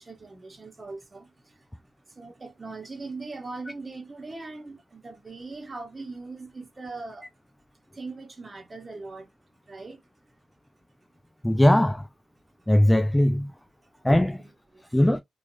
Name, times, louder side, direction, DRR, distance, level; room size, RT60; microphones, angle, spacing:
voice 1, 0.0-7.3 7.9-9.3 9.7-10.3 12.6-12.7 13.8-14.1 14.4-14.9, right 3 dB, 40° right, 1.0 m, -41 dB
voice 2, 11.4-12.1 12.7-13.5 14.0-14.4 14.9-15.2, left 1 dB, 10° left, 0.3 m, -20 dB
2.8 x 2.4 x 2.6 m
supercardioid pair, 45°, 0 cm